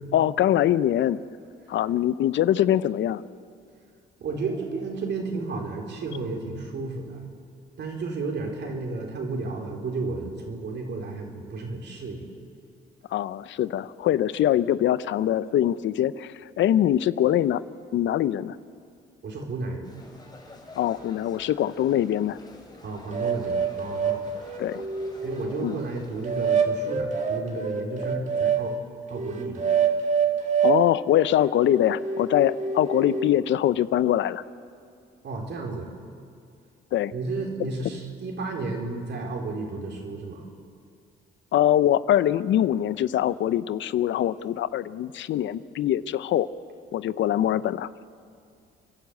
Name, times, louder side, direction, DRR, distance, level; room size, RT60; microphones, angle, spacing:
voice 1, 0.1-1.2 1.7-3.2 13.1-17.6 17.9-18.6 20.8-22.4 24.6-24.8 25.6-25.8 30.6-34.4 36.9-37.1 41.5-46.5 46.9-47.9, left 11 dB, 70° left, 17 dB, 0.6 m, -23 dB
voice 2, 4.2-7.3 7.8-12.3 19.2-19.9 22.8-24.3 25.2-28.7 29.1-29.7 35.2-35.9 37.1-40.5, right 3 dB, 60° right, 1 dB, 4.2 m, -32 dB
sound 1, 19.8-26.7, left 2 dB, 20° left, 5.4 m, -48 dB
sound 2, 23.1-25.5 26.2-28.6 29.1-30.8 31.3-33.3, right 6 dB, 35° right, 2.4 m, -26 dB
29.0 x 11.5 x 8.4 m, 2.3 s
cardioid pair, 90°, 20 cm